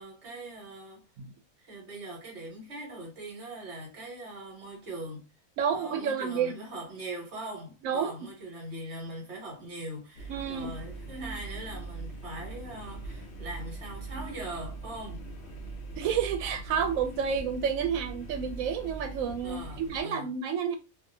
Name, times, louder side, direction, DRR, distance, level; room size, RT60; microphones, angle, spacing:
voice 1, 0.0-1.0 1.6-5.2 5.7-15.2 19.4-20.3, right 1 dB, 60° right, 1.3 m, -41 dB
voice 2, 5.6-6.5 7.8-8.1 10.3-10.7 16.0-20.7, right 7 dB, 85° right, 1.0 m, -30 dB
sound 1, 10.2-20.0, right 3 dB, 60° left, 0.9 m, -41 dB
2.7 x 2.3 x 2.6 m
omnidirectional pair, 1.4 m